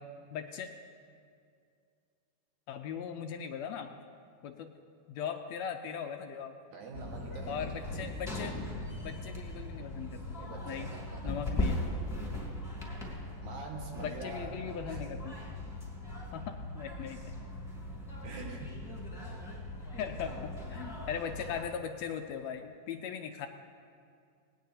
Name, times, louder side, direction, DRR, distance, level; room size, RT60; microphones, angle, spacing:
voice 1, 0.3-0.7 2.7-3.9 4.4-4.7 5.1-6.5 7.5-8.6 9.0-10.4 10.7-10.9 11.2-11.8 14.0-15.4 16.3-17.2 20.0-23.5, left 7 dB, 75° left, 5 dB, 1.7 m, -39 dB
voice 2, 6.7-7.8 10.3-11.4 13.4-15.0 18.2-18.8, right 3 dB, 75° right, 0 dB, 3.0 m, -45 dB
sound 1, 6.9-21.6, left 1 dB, 10° left, 2.5 m, -39 dB
19.0 x 19.0 x 2.8 m, 2.3 s
omnidirectional pair, 3.4 m